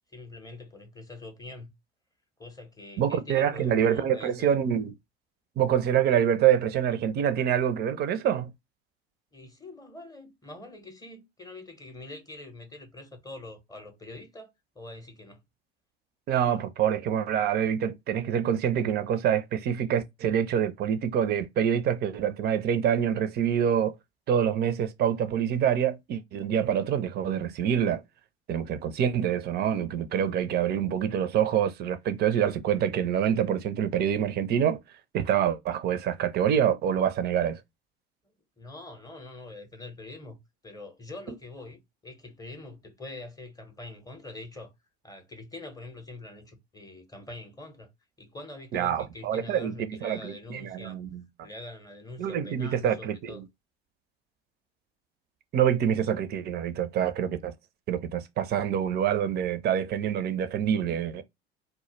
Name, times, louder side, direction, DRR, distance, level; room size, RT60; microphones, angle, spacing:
voice 1, 0.1-1.7 2.4-4.5 9.3-15.4 38.2-40.4 40.6-44.7 45.0-47.9 48.2-51.0 51.4-53.4, left 2 dB, 10° left, 0.6 m, -44 dB
voice 2, 3.0-4.9 5.6-8.5 16.3-23.9 24.3-28.0 28.5-34.8 35.1-37.6 48.7-51.2 52.2-53.4 55.5-57.5 57.9-61.2, right 9 dB, 35° right, 0.4 m, -26 dB
2.1 x 2.1 x 3.0 m
figure-of-eight pair, 70°, 31 cm